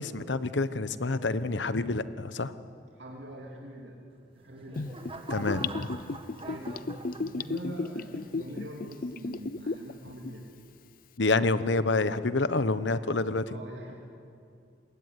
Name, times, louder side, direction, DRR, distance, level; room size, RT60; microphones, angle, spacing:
voice 1, 0.0-2.5 5.3-5.9 11.2-13.4, left 3 dB, 90° left, 13 dB, 1.0 m, -28 dB
voice 2, 3.0-4.0 4.3-4.9 6.4-6.8 7.2-10.5 13.5-13.9, equal, 80° right, -2 dB, 3.0 m, -43 dB
sound 1, 4.2-7.8 8.4-8.7, right 2 dB, 30° right, 1.8 m, -44 dB
Gurgling / Bathtub (filling or washing), 4.8-9.9 10.2-10.3, left 3 dB, 50° left, 0.6 m, -34 dB
26.0 x 21.0 x 9.6 m, 2.4 s
head